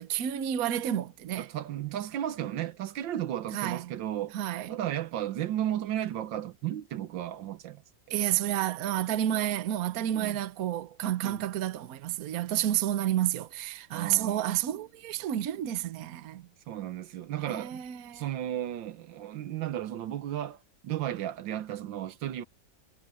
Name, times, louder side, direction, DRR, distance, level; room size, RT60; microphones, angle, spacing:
voice 1, 0.0-1.5 3.5-3.9 4.3-4.7 8.1-16.5 17.5-18.2, right 12 dB, 55° right, 1.2 m, -30 dB
voice 2, 1.4-4.4 4.7-7.8 10.1-10.4 11.2-11.5 13.9-14.4 16.7-17.8 18.1-22.4, right 11 dB, 80° right, 1.6 m, -34 dB
omnidirectional pair, 2.1 m